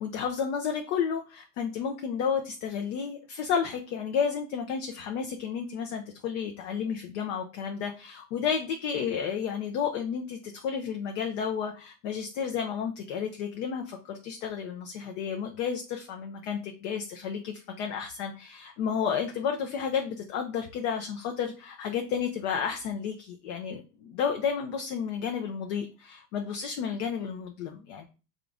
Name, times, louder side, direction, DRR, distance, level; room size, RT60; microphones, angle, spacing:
voice 1, 0.0-28.0, left 7 dB, 50° left, 4 dB, 0.6 m, -32 dB
3.7 x 2.5 x 3.4 m, 0.33 s
supercardioid pair, 125°, 48 cm